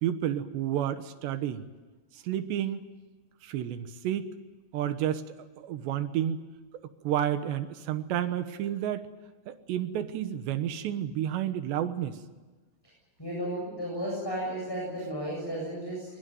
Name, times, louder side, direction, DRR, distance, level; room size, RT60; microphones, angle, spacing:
voice 1, 0.0-1.7 2.2-2.8 3.4-4.3 4.7-5.2 5.6-6.4 7.0-9.1 9.5-12.2, right 11 dB, 70° right, 9 dB, 3.3 m, -30 dB
voice 2, 13.2-16.1, right 1 dB, 5° left, -3 dB, 7.5 m, -33 dB
22.0 x 22.0 x 9.3 m, 1.3 s
omnidirectional pair, 5.4 m